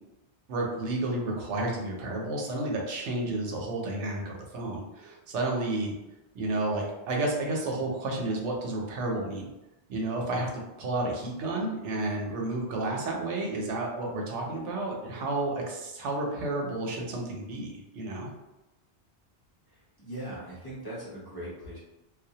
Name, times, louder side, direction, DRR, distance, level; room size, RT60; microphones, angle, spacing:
voice 1, 0.5-5.9 6.3-9.5 9.9-10.5 10.8-18.3, right 2 dB, 90° right, 0 dB, 0.9 m, -31 dB
voice 2, 19.7-21.8, right 1 dB, 25° left, -9 dB, 0.7 m, -40 dB
2.3 x 2.0 x 2.7 m, 0.98 s
omnidirectional pair, 1.2 m